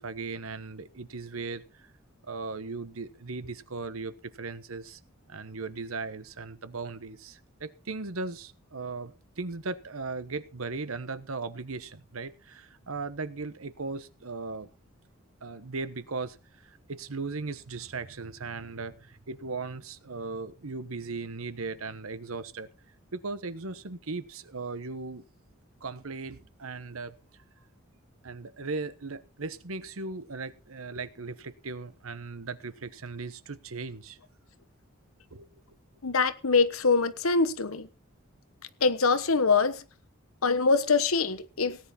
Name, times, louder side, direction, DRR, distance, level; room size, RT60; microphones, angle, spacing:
voice 1, 0.0-1.9 2.2-5.0 5.3-14.7 15.4-22.7 23.1-25.2 25.8-27.2 28.2-34.2 35.3-35.5, right 3 dB, 85° right, 1.1 m, -37 dB
voice 2, 36.0-37.9 38.8-39.8 40.4-41.8, left 4 dB, 90° left, 1.2 m, -24 dB
17.5 x 9.7 x 4.3 m
head